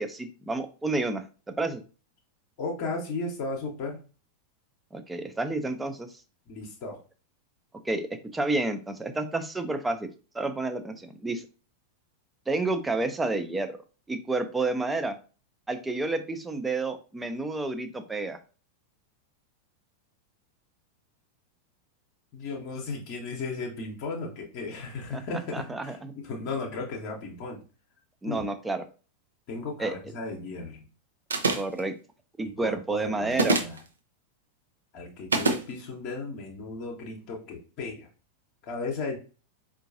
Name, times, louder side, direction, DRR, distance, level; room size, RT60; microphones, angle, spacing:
voice 1, 0.0-1.8 4.9-6.1 7.8-8.1 8.3-10.1 10.3-11.5 12.5-13.7 14.1-15.2 15.7-18.4 25.1-26.1 28.2-28.8 29.8-29.9 31.5-31.9 32.4-33.6, right 2 dB, 10° right, 8 dB, 0.5 m, -30 dB
voice 2, 2.6-4.0 6.5-7.0 22.3-27.6 28.3-28.5 29.5-30.8 32.4-33.8 34.9-38.1 38.6-39.2, left 3 dB, 45° left, 0 dB, 0.8 m, -35 dB
sound 1, 31.3-31.8 33.3-33.8 35.3-35.6, right 3 dB, 70° right, 0.5 m, -24 dB
4.5 x 2.5 x 2.5 m, 0.35 s
figure-of-eight pair, 90°, 0 cm